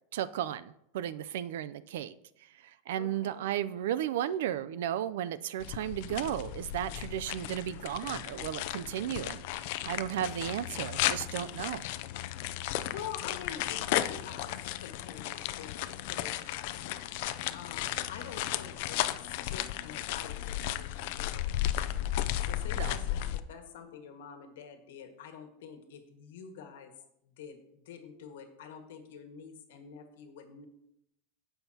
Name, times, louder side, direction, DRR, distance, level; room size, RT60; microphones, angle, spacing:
voice 1, 0.1-2.1 2.9-9.4 9.8-11.9 22.8-23.0, right 11 dB, 80° right, 15 dB, 0.4 m, -34 dB
voice 2, 2.9-3.5 12.9-26.9 27.2-30.6, left 7 dB, 85° left, 5 dB, 1.6 m, -47 dB
sound 1, 5.6-23.4, left 13 dB, 55° left, 0.4 m, -34 dB
16.0 x 5.7 x 2.8 m, 0.79 s
supercardioid pair, 165°, 0 cm